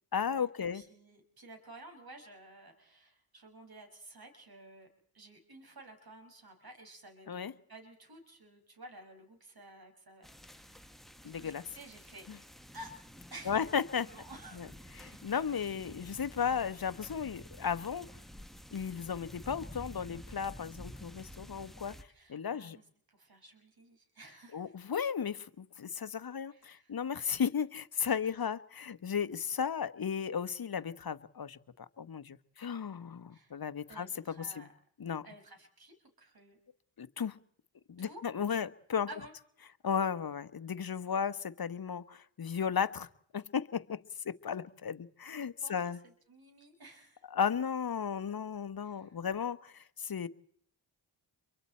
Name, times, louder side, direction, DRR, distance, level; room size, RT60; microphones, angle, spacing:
voice 1, 0.1-0.8 7.3-7.5 11.2-11.6 12.3-12.4 13.5-14.1 14.6-14.7 15.0-18.1 18.7-21.9 22.3-22.8 24.5-34.1 34.4-34.7 35.0-35.2 37.0-37.4 37.9-39.1 39.8-43.1 43.3-44.0 44.2-46.0 47.3-50.3, left 7 dB, 45° left, 13 dB, 1.2 m, -35 dB
voice 2, 0.7-4.9 5.1-11.0 11.3-12.3 12.7-12.9 13.3-13.6 14.0-14.6 15.0-15.2 22.1-24.7 26.5-27.3 28.0-28.2 33.3-33.5 33.9-34.7 35.2-36.6 38.0-38.3 39.1-39.3 45.6-47.2 48.8-49.1, right 1 dB, 45° right, 5 dB, 6.2 m, -53 dB
sound 1, 10.2-22.0, equal, ahead, 1.4 m, -51 dB
30.0 x 23.5 x 4.4 m, 0.62 s
cardioid pair, 50°, 49 cm